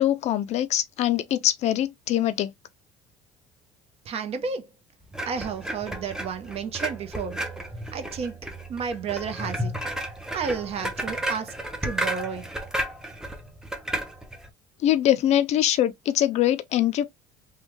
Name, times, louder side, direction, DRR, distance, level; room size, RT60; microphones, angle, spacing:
voice 1, 0.0-2.5 14.8-17.1, left 12 dB, 50° left, 0.4 m, -23 dB
voice 2, 4.0-4.7 5.2-7.4 7.9-8.4 8.7-9.7 10.3-11.5 11.8-12.5, right 6 dB, 45° right, 0.8 m, -31 dB
sound 1, 5.1-14.5, right 1 dB, 5° right, 0.7 m, -33 dB
3.2 x 2.2 x 3.1 m
supercardioid pair, 110°, 14 cm